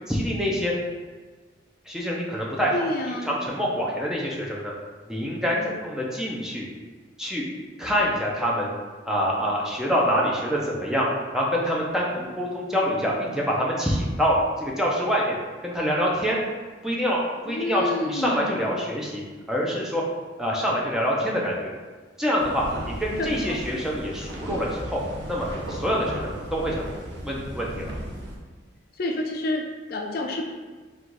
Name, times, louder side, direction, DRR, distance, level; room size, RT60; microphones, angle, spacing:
voice 1, 0.1-0.7 1.9-4.7 5.1-5.6 5.8-6.7 7.2-7.5 7.8-8.7 9.1-11.1 11.3-15.4 15.6-16.4 16.8-17.2 17.4-19.2 19.5-20.0 20.4-21.7 22.2-25.0 25.3-27.9, equal, 5° right, -4 dB, 0.6 m, -26 dB
voice 2, 2.7-3.4 5.5-5.8 17.5-18.6 23.2-23.6 29.0-30.5, left 2 dB, 50° left, 2 dB, 0.4 m, -29 dB
sound 1, 22.4-28.4, right 1 dB, 60° right, 0.8 m, -35 dB
3.9 x 2.4 x 4.6 m, 1.4 s
head